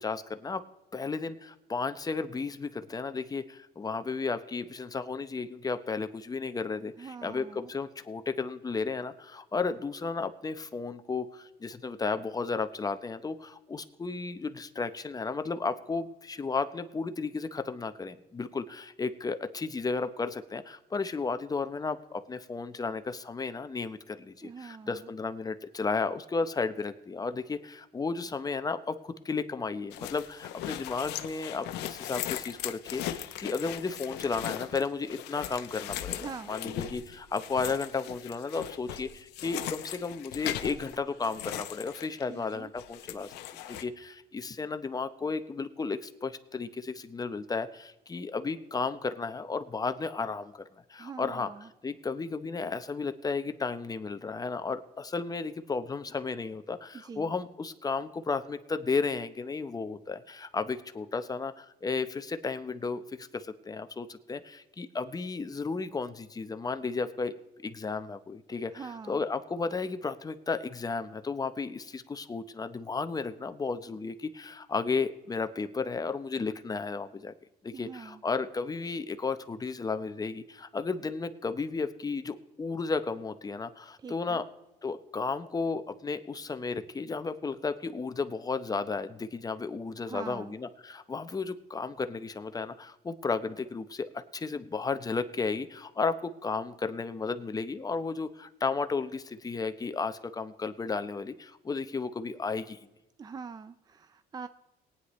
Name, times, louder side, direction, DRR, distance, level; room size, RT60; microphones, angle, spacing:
voice 1, 0.0-0.6 0.9-43.3 43.7-50.6 50.9-51.5 51.8-67.3 67.6-68.7 69.1-77.3 77.6-84.4 84.8-102.9, left 4 dB, 20° left, 10 dB, 0.7 m, -33 dB
voice 2, 7.0-7.7 24.4-25.1 36.2-36.5 42.3-42.7 51.0-51.7 56.9-57.3 68.7-69.2 77.7-78.2 84.0-84.4 90.0-90.5 103.2-104.5, right 5 dB, 25° right, 12 dB, 0.4 m, -43 dB
sound 1, 29.9-42.5 42.8-43.8, left 12 dB, 85° left, 0.7 m, -38 dB
18.5 x 9.7 x 3.1 m, 0.96 s
cardioid pair, 110°, 17 cm